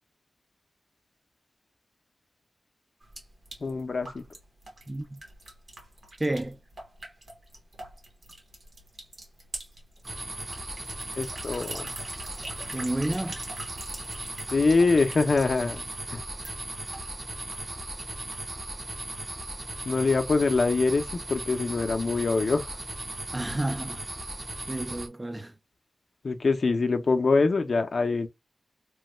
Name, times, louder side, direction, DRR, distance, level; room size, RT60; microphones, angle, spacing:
sound 1, 3.0-18.7, right 2 dB, 60° right, 1.3 m, -45 dB
voice 1, 3.6-4.2 11.1-11.9 14.5-16.2 19.8-22.8 26.2-28.3, left 3 dB, 65° left, 0.6 m, -24 dB
voice 2, 4.9-5.2 6.2-6.6 12.7-13.4 23.3-24.0 24.7-25.5, right 1 dB, 20° right, 0.3 m, -30 dB
sound 2, 10.0-25.1, right 2 dB, 40° right, 0.8 m, -37 dB
3.1 x 2.2 x 3.1 m
wide cardioid pair, 70°, 0 cm